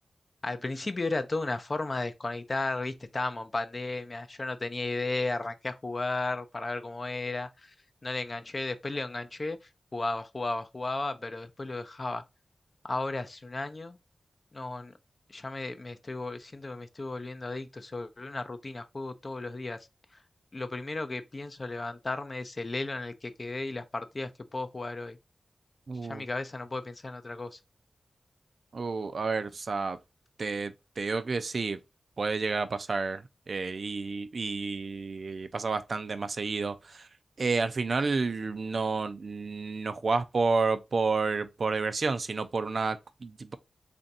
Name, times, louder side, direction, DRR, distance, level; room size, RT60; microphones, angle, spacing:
voice 1, 0.4-7.7 8.0-9.6 9.9-12.2 12.8-14.0 14.5-14.9 15.3-19.8 20.5-25.2 26.0-27.6, left 2 dB, 45° left, 0.5 m, -34 dB
voice 2, 25.9-26.2 28.7-30.0 30.4-31.8 32.2-37.1 37.4-43.6, right 4 dB, 65° right, 0.4 m, -30 dB
3.4 x 2.6 x 4.0 m
cardioid pair, 55°, 0 cm